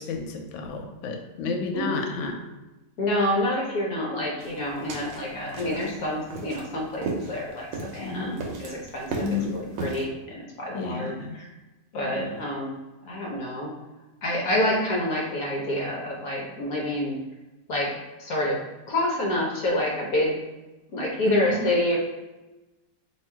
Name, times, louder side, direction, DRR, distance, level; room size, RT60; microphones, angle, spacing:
voice 1, 0.0-2.3 8.0-8.4 9.2-9.5 10.7-11.3 11.9-12.4 21.3-21.6, left 4 dB, 75° left, 3 dB, 1.3 m, -31 dB
voice 2, 3.0-7.7 7.9-8.3 8.6-11.5 11.9-12.7 13.0-13.7 14.2-17.2 17.7-17.9 18.2-18.6 18.9-20.4 20.9-22.0, left 1 dB, 60° left, -3 dB, 1.0 m, -27 dB
sound 1, 4.4-10.0, right 3 dB, 70° right, 1.2 m, -35 dB
3.0 x 2.8 x 4.4 m, 1.1 s
omnidirectional pair, 2.3 m